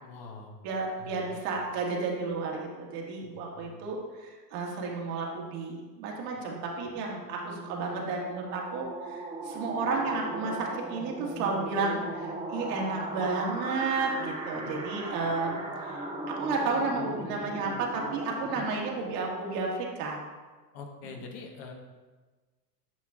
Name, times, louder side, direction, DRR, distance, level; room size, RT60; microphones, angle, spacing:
voice 1, 0.0-0.6 1.0-1.3 3.3-3.7 14.6-14.8 18.5-18.7 20.7-21.7, left 4 dB, 60° left, 2 dB, 1.3 m, -44 dB
voice 2, 0.6-16.0 16.4-20.2, right 3 dB, 65° right, -1 dB, 1.8 m, -32 dB
sound 1, 7.2-19.6, right 2 dB, 10° right, 0.8 m, -38 dB
9.1 x 5.9 x 2.5 m, 1.3 s
hypercardioid pair, 105°, 49 cm